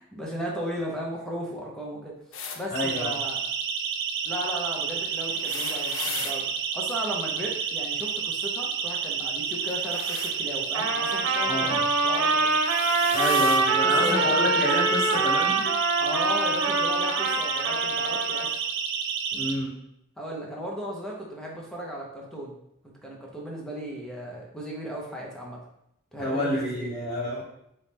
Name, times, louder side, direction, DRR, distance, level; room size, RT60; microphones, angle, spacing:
voice 1, 0.0-2.1 2.6-3.4 4.2-6.5 6.7-11.8 12.0-12.6 13.3-13.5 13.8-14.4 16.0-18.5 20.2-22.6 22.8-25.6 26.1-26.9, equal, 5° left, -3 dB, 0.7 m, -35 dB
sound 1, 2.3-2.6 5.2-6.4 9.6-10.3 11.7-11.9 12.5-13.6 14.7-14.8 16.0-16.1, left 6 dB, 70° left, 0.5 m, -37 dB
voice 2, 2.7-3.1 11.5-11.8 13.1-15.7 19.3-19.7 26.2-27.4, left 1 dB, 25° left, -13 dB, 1.4 m, -28 dB
Siren, 2.8-19.5, right 6 dB, 55° right, 0.3 m, -30 dB
Trumpet, 10.7-18.5, right 3 dB, 90° right, 0.7 m, -25 dB
4.0 x 3.1 x 3.4 m, 0.78 s
head